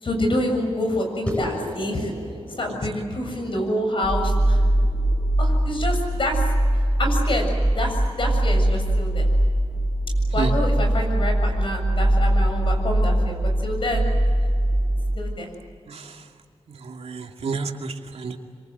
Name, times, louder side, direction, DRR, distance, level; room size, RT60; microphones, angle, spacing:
voice 1, 0.0-2.1 2.6-4.6 5.4-6.4 7.0-9.3 10.3-14.1 15.2-15.5, left 1 dB, 55° left, 3 dB, 7.3 m, -27 dB
sound 1, 1.3-6.0, left 1 dB, 10° left, 7.3 m, -35 dB
sound 2, 4.0-15.2, right 1 dB, 10° right, 6.7 m, -21 dB
voice 2, 15.9-16.2 16.7-18.4, right 5 dB, 75° right, 3 dB, 2.6 m, -31 dB
27.0 x 25.5 x 8.1 m, 2.2 s
wide cardioid pair, 130°, 11 cm